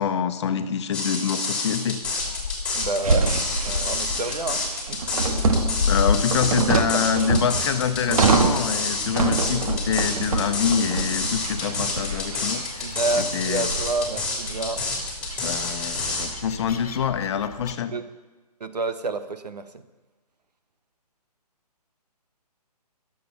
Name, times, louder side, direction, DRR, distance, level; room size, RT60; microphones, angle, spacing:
voice 1, 0.0-2.0 5.9-12.6 13.2-13.7 15.4-17.9, left 8 dB, 45° left, 9 dB, 1.0 m, -26 dB
sound 1, 0.9-16.3, left 3 dB, 5° left, 3.0 m, -28 dB
Gull seagull, 2.0-17.7, left 5 dB, 65° left, 1.4 m, -34 dB
voice 2, 2.7-3.3 3.6-4.6 4.9-5.0 6.7-6.8 12.8-14.8 17.9-18.1 18.6-19.7, right 3 dB, 80° right, 10 dB, 1.3 m, -28 dB
sound 2, 3.0-16.8, right 4 dB, 60° right, 1.6 m, -26 dB
22.0 x 7.8 x 5.6 m, 1.2 s
hypercardioid pair, 145°, 21 cm